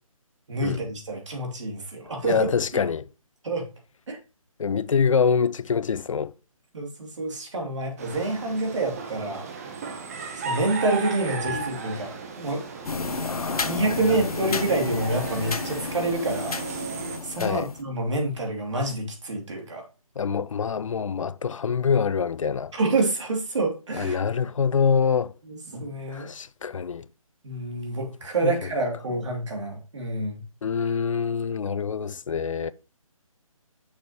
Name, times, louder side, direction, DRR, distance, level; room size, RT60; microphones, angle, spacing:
voice 1, 0.5-2.5 2.7-2.8 3.4-3.6 4.1-4.2 6.7-9.5 10.3-12.6 13.6-16.6 17.2-19.8 22.7-24.2 25.5-26.3 27.4-30.4, right 2 dB, 55° right, 2.8 m, -27 dB
voice 2, 2.2-3.1 4.6-6.3 11.5-11.6 13.2-14.6 17.4-17.7 20.2-22.7 23.9-25.3 26.1-27.0 28.4-28.6 30.6-32.7, left 6 dB, 65° left, 0.4 m, -25 dB
sound 1, 8.0-17.2, right 4 dB, 25° right, 0.9 m, -35 dB
sound 2, 12.8-17.8, left 4 dB, 85° left, 0.9 m, -32 dB
6.9 x 6.6 x 3.0 m
figure-of-eight pair, 160°, 18 cm